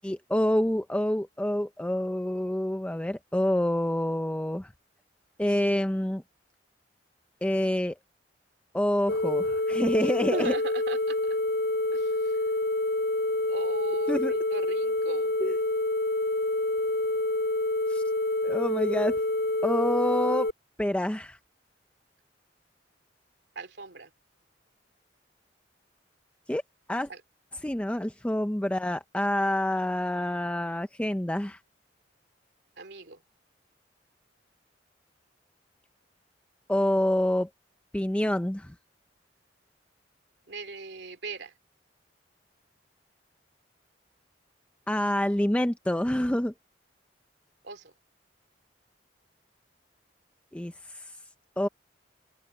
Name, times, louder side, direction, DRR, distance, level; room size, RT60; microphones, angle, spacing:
voice 1, 0.0-4.7 5.4-6.2 7.4-8.0 8.7-10.5 14.1-14.4 15.4-15.6 17.9-18.0 18.4-19.2 19.6-20.5 20.8-21.4 26.5-26.6 26.9-27.1 27.6-31.6 36.7-37.5 37.9-38.7 44.9-46.5 50.5-51.1 51.6-51.7, left 1 dB, 5° left, 0.5 m, -27 dB
sound 1, 9.1-20.5, left 2 dB, 80° left, 2.0 m, -27 dB
voice 2, 10.0-11.4 11.9-12.4 13.5-15.4 23.5-24.1 27.1-27.2 32.8-33.2 40.5-41.5 47.6-47.9, right 3 dB, 70° right, 2.7 m, -39 dB
open air
head